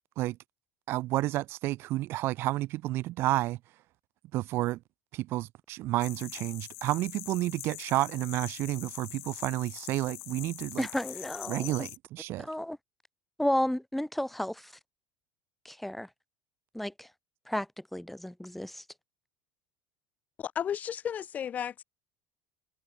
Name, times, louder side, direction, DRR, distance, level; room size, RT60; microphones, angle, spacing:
voice 1, 0.9-3.6 4.3-4.8 5.1-10.9 11.5-12.5, right 17 dB, 50° right, 5.2 m, -30 dB
sound 1, 6.0-12.0, left 26 dB, 65° left, 4.4 m, -43 dB
voice 2, 10.8-11.9 12.4-12.8 13.4-14.7 15.6-16.1 16.7-17.1 17.5-18.8, left 1 dB, ahead, 5.7 m, -32 dB
voice 3, 20.4-21.8, left 9 dB, 30° left, 7.0 m, -33 dB
cardioid pair, 145°, 5 cm